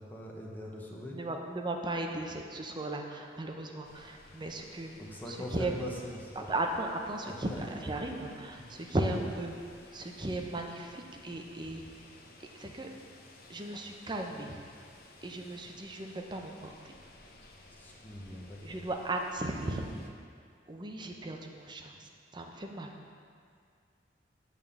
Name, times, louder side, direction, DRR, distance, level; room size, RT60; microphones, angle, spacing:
voice 1, 0.0-1.2 5.0-6.4 7.2-7.6 8.6-8.7 17.7-18.8, left 1 dB, 10° left, -3 dB, 0.9 m, -42 dB
voice 2, 1.1-4.9 5.3-5.7 6.4-9.5 9.9-12.1 12.5-12.9 13.5-14.6 15.2-17.0 18.6-19.8 20.7-22.9, right 2 dB, 25° right, 2 dB, 0.6 m, -36 dB
sound 1, 3.8-20.1, left 2 dB, 55° left, 0.8 m, -56 dB
8.7 x 3.7 x 7.0 m, 2.2 s
head